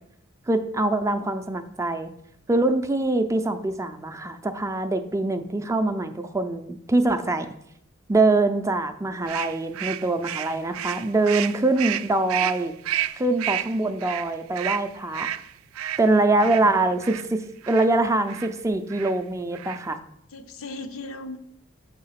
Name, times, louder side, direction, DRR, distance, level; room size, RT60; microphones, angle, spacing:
voice 1, 0.5-2.1 2.5-7.5 8.1-12.7 13.1-15.3 16.0-20.0, right 2 dB, 15° right, 8 dB, 0.4 m, -24 dB
sound 1, 9.3-17.3 17.6-17.9 18.3-18.5 18.9-19.2 19.5-20.0, right 12 dB, 85° right, 0.3 m, -31 dB
voice 2, 16.3-16.9 20.3-21.4, left 2 dB, 90° left, 8 dB, 0.7 m, -38 dB
7.0 x 3.7 x 5.6 m, 0.74 s
head